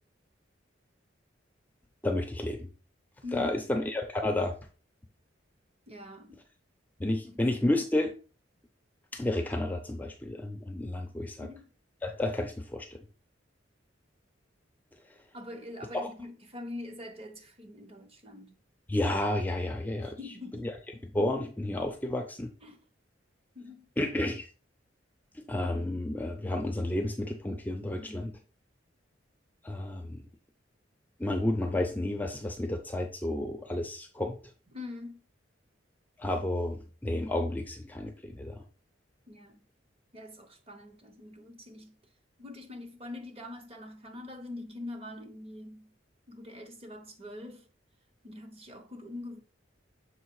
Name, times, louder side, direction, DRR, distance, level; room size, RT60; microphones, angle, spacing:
voice 1, 2.0-2.7 3.3-4.6 7.0-8.1 9.1-11.5 12.0-13.0 18.9-20.2 20.6-20.7 21.1-22.5 24.0-24.5 25.3-28.3 29.6-30.2 31.2-34.4 36.2-38.6, left 1 dB, 10° left, 0.5 m, -31 dB
voice 2, 3.2-3.5 5.9-6.4 7.2-7.4 11.4-11.7 15.3-18.5 20.0-21.0 22.6-22.8 23.5-23.9 27.9-28.4 34.7-35.3 39.3-39.6 40.1-42.0 42.4-45.9 46.3-47.7 48.2-49.4, left 2 dB, 30° right, 1.0 m, -44 dB
6.5 x 3.3 x 4.7 m
head